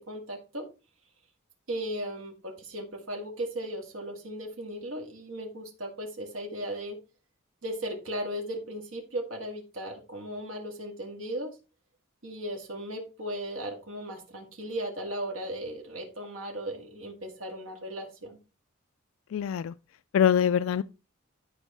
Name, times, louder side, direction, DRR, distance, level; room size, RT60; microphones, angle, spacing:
voice 1, 0.1-0.6 1.7-7.0 7.6-11.5 12.2-18.4, right 1 dB, 75° right, 2.0 m, -36 dB
voice 2, 19.3-19.7 20.1-20.8, left 8 dB, 70° left, 0.3 m, -24 dB
11.0 x 4.5 x 4.2 m
head